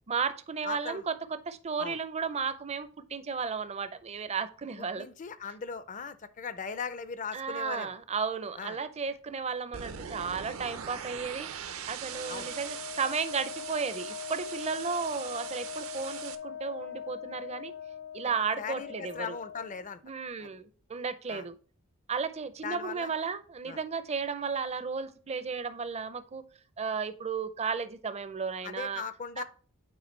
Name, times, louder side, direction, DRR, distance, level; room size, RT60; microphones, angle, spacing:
voice 1, 0.1-1.1 1.5-5.1 7.3-11.5 11.9-17.7 18.1-19.4 20.0-21.5 22.1-26.4 26.8-29.0 29.4-29.5, right 5 dB, 30° right, 0.5 m, -34 dB
voice 2, 0.6-1.0 1.8-2.0 4.9-8.0 8.6-8.8 12.3-12.5 18.6-20.0 20.4-20.5 21.3-21.5 22.6-23.1 23.7-23.8 28.6-29.4, left 6 dB, 35° left, 0.5 m, -39 dB
sound 1, 9.7-16.4, right 8 dB, 70° right, 0.7 m, -41 dB
Wind instrument woodwind instrument, 12.0-19.8, left 8 dB, 80° left, 1.9 m, -42 dB
8.6 x 4.8 x 3.2 m
head